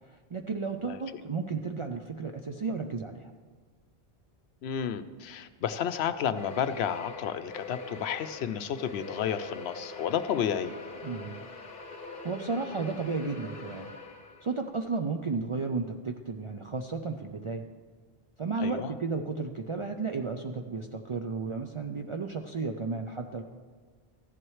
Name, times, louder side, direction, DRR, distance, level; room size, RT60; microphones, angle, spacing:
voice 1, 0.0-3.3 11.0-11.4 12.1-13.9 14.4-17.6 18.4-23.4, right 4 dB, 50° right, 3 dB, 0.4 m, -33 dB
voice 2, 4.6-10.7 18.6-18.9, left 8 dB, 75° left, 11 dB, 0.8 m, -31 dB
sound 1, 6.4-14.6, left 3 dB, 50° left, 1.1 m, -43 dB
14.5 x 10.5 x 3.2 m, 1.5 s
omnidirectional pair, 1.1 m